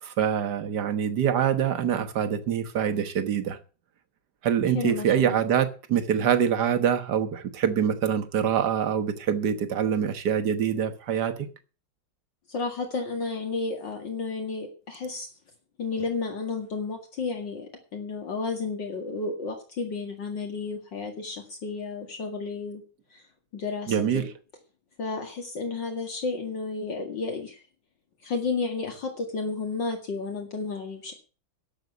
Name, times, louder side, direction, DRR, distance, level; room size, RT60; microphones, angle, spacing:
voice 1, 0.0-3.6 4.4-11.5 23.9-24.2, right 8 dB, 60° right, 1.7 m, -25 dB
voice 2, 4.7-5.4 12.5-15.3 15.8-22.8 23.1-23.2 23.5-24.3 25.0-27.6 28.2-31.1, left 4 dB, 65° left, 2.7 m, -32 dB
12.0 x 7.6 x 7.9 m
omnidirectional pair, 2.2 m